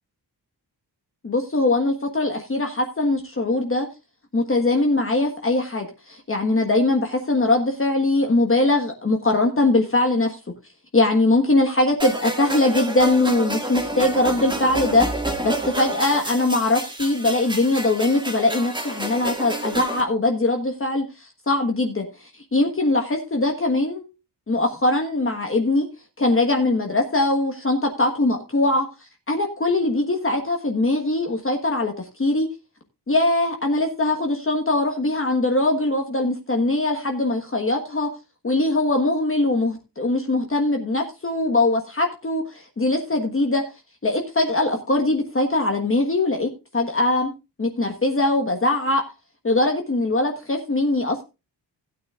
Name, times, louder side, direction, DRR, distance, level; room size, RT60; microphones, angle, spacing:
voice 1, 1.2-3.9 4.3-10.4 10.9-24.1 24.5-25.9 26.2-28.9 29.3-32.5 33.1-38.1 38.4-43.6 44.0-47.3 47.6-49.0 49.4-51.2, left 2 dB, 30° left, 3 dB, 1.5 m, -21 dB
sound 1, 12.0-20.0, right 1 dB, 10° right, 1.8 m, -29 dB
16.5 x 9.3 x 2.4 m, 0.27 s
wide cardioid pair, 155°, 41 cm